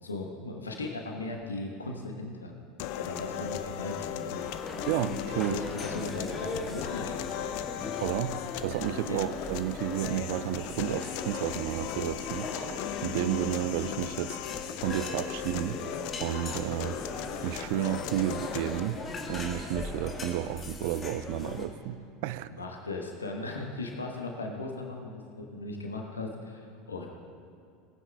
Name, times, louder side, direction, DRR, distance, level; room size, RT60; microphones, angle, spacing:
voice 1, 0.0-2.5 3.0-4.4 5.5-7.5 9.1-9.3 22.5-27.1, left 2 dB, 85° left, 1 dB, 1.1 m, -37 dB
sound 1, 2.8-18.8, left 11 dB, 55° left, 0.4 m, -37 dB
sound 2, 4.3-21.7, left 3 dB, 25° left, 1.4 m, -39 dB
voice 2, 4.9-5.6 8.0-14.4 14.8-15.8 16.2-19.0 19.3-22.5, right 13 dB, 60° right, 15 dB, 0.3 m, -32 dB
19.0 x 9.0 x 2.3 m, 2.5 s
figure-of-eight pair, 75°, 0 cm